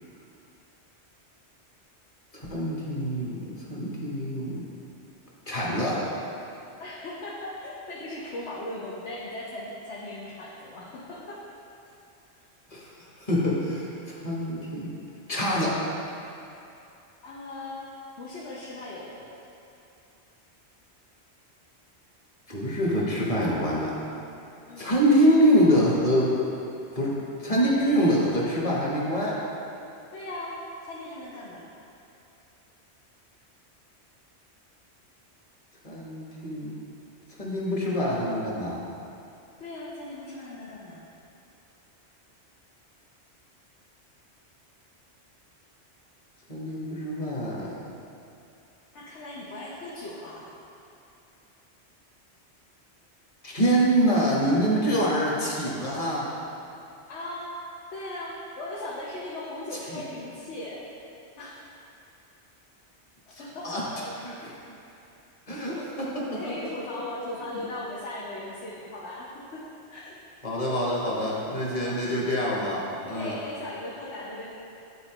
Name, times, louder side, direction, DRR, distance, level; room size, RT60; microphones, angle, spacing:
voice 1, 2.3-4.7 5.5-6.1 12.7-14.9 15.3-15.8 22.5-24.0 24.8-26.3 26.9-29.4 35.8-36.7 37.4-38.8 46.5-47.8 53.4-56.3 59.9-60.0 63.6-63.8 64.2-64.8 65.5-66.6 70.4-72.8 73.1-73.4, equal, 35° left, -5 dB, 1.2 m, -25 dB
voice 2, 6.8-11.4 17.2-17.8 18.2-19.3 24.7-24.9 30.1-30.6 30.9-31.7 39.6-41.0 48.9-50.5 57.1-57.5 57.9-60.8 61.4-61.6 63.3-64.1 65.8-69.6 69.9-70.2 73.0-74.5, left 1 dB, 85° left, -6 dB, 1.2 m, -38 dB
9.9 x 4.3 x 2.9 m, 2.8 s
omnidirectional pair, 1.1 m